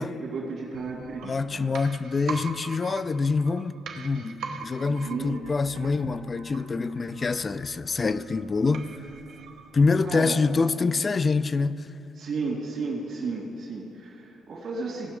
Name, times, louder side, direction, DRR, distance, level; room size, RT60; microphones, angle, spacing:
voice 1, 0.0-1.7 4.9-5.4 10.0-10.4 12.2-15.1, right 3 dB, 65° right, 2.5 m, -33 dB
sound 1, 0.7-10.4 10.8-10.9, right 5 dB, 80° right, 0.9 m, -42 dB
voice 2, 1.2-8.9 9.7-11.8, left 4 dB, 35° left, 0.3 m, -25 dB
17.0 x 5.9 x 5.3 m
cardioid pair, 90°, 0 cm